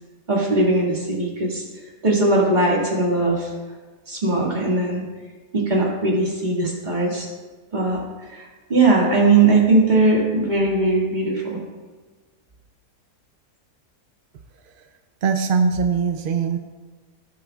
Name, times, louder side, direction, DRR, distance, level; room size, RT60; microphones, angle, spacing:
voice 1, 0.3-1.6 2.0-3.5 4.1-5.0 5.5-7.3 7.7-8.0 8.3-11.6, right 2 dB, 30° right, -3 dB, 2.1 m, -19 dB
voice 2, 15.2-16.6, right 5 dB, 65° right, 6 dB, 0.5 m, -21 dB
17.5 x 7.6 x 2.4 m, 1.4 s
omnidirectional pair, 1.5 m